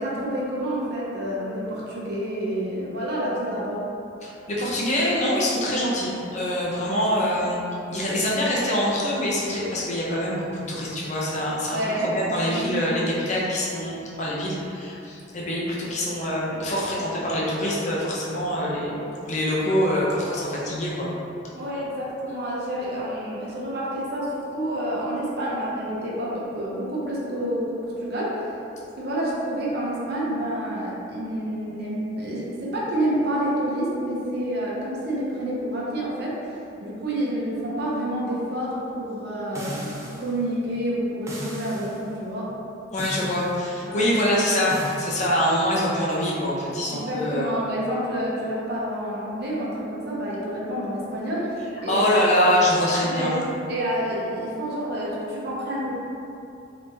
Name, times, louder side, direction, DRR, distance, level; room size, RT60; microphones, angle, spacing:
voice 1, 0.0-3.8 6.8-7.1 11.7-13.0 21.5-28.4 28.9-36.4 36.8-42.5 43.8-44.2 46.9-52.1 52.4-52.6 53.0-53.4 53.7-56.0, right 1 dB, 55° right, -6 dB, 0.7 m, -28 dB
voice 2, 4.2-7.6 7.9-21.1 42.9-47.5 51.9-53.3, equal, 40° left, -5 dB, 0.6 m, -24 dB
sound 1, 39.6-40.3 41.3-42.0 43.0-43.6 44.7-45.0, equal, 15° right, 0.3 m, -36 dB
3.4 x 2.9 x 2.7 m, 2.7 s
head